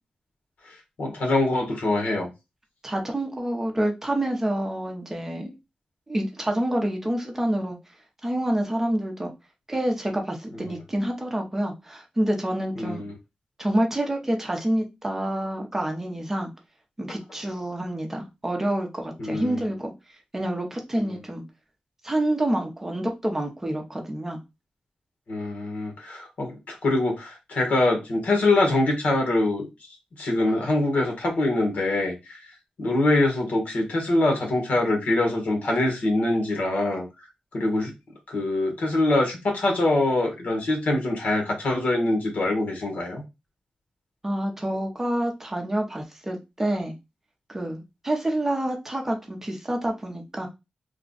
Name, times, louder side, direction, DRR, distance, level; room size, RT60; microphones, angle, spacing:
voice 1, 1.0-2.3 12.8-13.1 19.2-19.6 25.3-29.7 30.2-32.4 32.8-37.0 37.5-37.9 38.3-43.2, left 2 dB, 75° left, 1 dB, 1.4 m, -24 dB
voice 2, 2.8-5.5 6.1-7.8 8.2-9.3 9.7-13.0 13.6-16.5 17.0-19.9 20.3-21.4 22.0-24.4 44.2-46.9 47.5-50.5, right 1 dB, 15° right, 2 dB, 0.7 m, -27 dB
3.4 x 2.3 x 3.9 m, 0.24 s
wide cardioid pair, 175°, 3 cm